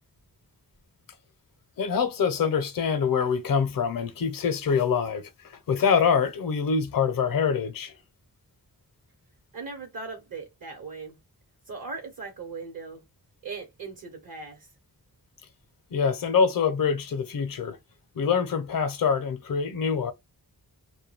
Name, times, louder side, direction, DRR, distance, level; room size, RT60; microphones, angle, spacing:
voice 1, 1.8-7.9 15.9-17.8 18.2-20.1, left 6 dB, 60° left, 0.6 m, -25 dB
voice 2, 9.5-11.2 11.7-13.0 13.4-14.7, right 4 dB, 60° right, 0.9 m, -39 dB
2.2 x 2.2 x 3.2 m
wide cardioid pair, 70°, 38 cm